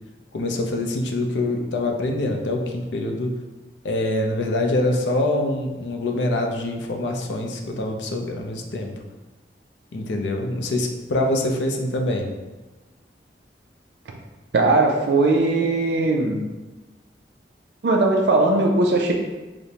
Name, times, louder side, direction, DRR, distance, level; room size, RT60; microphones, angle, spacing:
voice 1, 0.3-3.3 3.8-8.9 9.9-12.3, left 1 dB, 85° left, 3 dB, 0.5 m, -25 dB
voice 2, 14.5-16.4 17.8-19.1, right 2 dB, 70° right, 1 dB, 0.4 m, -19 dB
5.0 x 2.0 x 2.8 m, 1.2 s
head